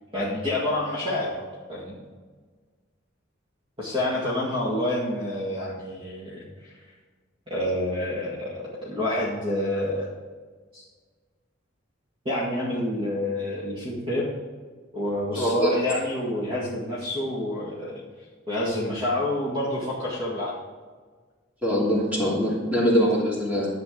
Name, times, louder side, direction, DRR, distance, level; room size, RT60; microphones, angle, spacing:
voice 1, 0.1-2.0 3.8-6.7 7.5-10.1 10.7-10.8 12.3-14.3 14.9-18.0 18.5-20.5, left 1 dB, 25° right, -6 dB, 1.9 m, -28 dB
voice 2, 15.4-15.7 21.6-23.7, equal, 10° right, -6 dB, 2.9 m, -23 dB
11.5 x 7.8 x 3.9 m, 1.5 s
head